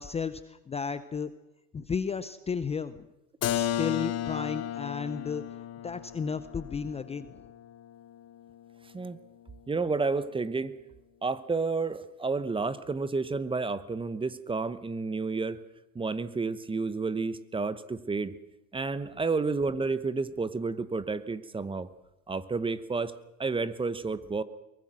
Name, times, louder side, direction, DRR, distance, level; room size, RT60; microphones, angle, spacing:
voice 1, 0.0-1.3 1.7-3.1 3.5-5.4 5.8-7.4, left 6 dB, 15° left, 13 dB, 0.7 m, -33 dB
Keyboard (musical), 3.4-9.0, left 11 dB, 35° left, 1.3 m, -35 dB
voice 2, 9.7-10.8 11.2-15.6 15.9-18.3 18.7-21.9 22.3-23.1 23.4-24.4, right 4 dB, 10° right, 15 dB, 1.0 m, -30 dB
23.0 x 20.0 x 6.3 m, 0.92 s
hypercardioid pair, 100°, 42 cm